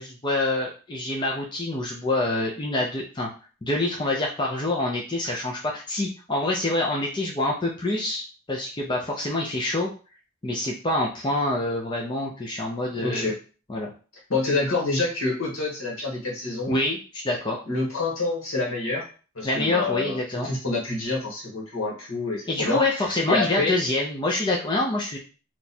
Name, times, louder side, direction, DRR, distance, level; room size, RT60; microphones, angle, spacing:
voice 1, 0.0-3.3 3.6-9.9 10.4-13.3 13.7-13.9 16.7-17.6 19.4-20.5 22.5-25.2, left 2 dB, 20° left, -1 dB, 0.5 m, -26 dB
voice 2, 12.9-13.4 14.3-16.8 17.7-19.1 19.3-23.8, left 3 dB, 70° left, -1 dB, 1.4 m, -27 dB
3.0 x 2.3 x 4.1 m, 0.36 s
head